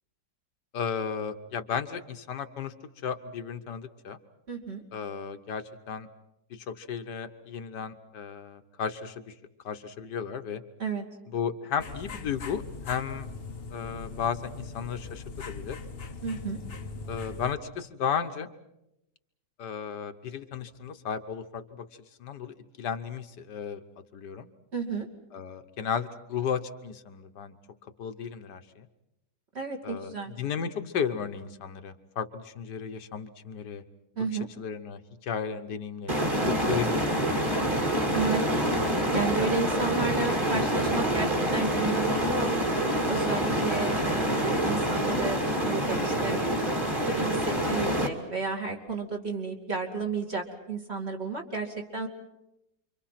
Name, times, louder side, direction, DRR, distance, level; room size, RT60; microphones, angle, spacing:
voice 1, 0.7-2.7 3.0-4.2 4.9-6.1 6.5-9.3 9.6-10.6 11.3-13.3 13.7-15.8 17.1-18.5 19.6-21.9 22.2-23.8 24.1-24.5 25.3-27.5 28.0-28.9 29.8-33.8 34.6-37.5 43.8-44.0, left 7 dB, 70° left, 8 dB, 1.7 m, -34 dB
voice 2, 4.5-4.8 10.8-11.1 16.2-16.6 24.7-25.1 29.5-30.3 34.2-34.5 38.1-38.7 39.1-42.5 43.1-46.4 47.0-52.1, right 4 dB, 35° right, 1 dB, 2.8 m, -32 dB
sound 1, 11.8-17.6, left 4 dB, 40° left, 1.1 m, -40 dB
sound 2, 36.1-48.1, right 1 dB, 15° right, 2.4 m, -26 dB
28.5 x 24.5 x 5.8 m, 0.89 s
omnidirectional pair, 1.9 m